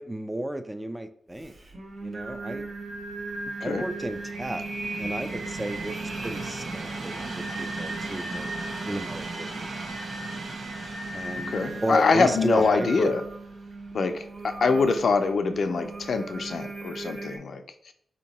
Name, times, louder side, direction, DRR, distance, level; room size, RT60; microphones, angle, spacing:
voice 1, 0.0-1.6 2.0-2.7 3.6-4.7 5.0-8.5 8.9-9.6 11.1-11.6 11.8-13.1, right 1 dB, 15° right, 9 dB, 0.4 m, -33 dB
Singing, 1.4-17.4, right 2 dB, 55° right, 1.0 m, -37 dB
Train, 1.9-15.2 15.8-16.0, right 2 dB, 75° right, 0.9 m, -40 dB
voice 2, 11.3-13.2 13.9-17.9, left 4 dB, 65° left, 7 dB, 0.5 m, -24 dB
4.4 x 2.8 x 4.1 m, 0.67 s
wide cardioid pair, 100°, 0 cm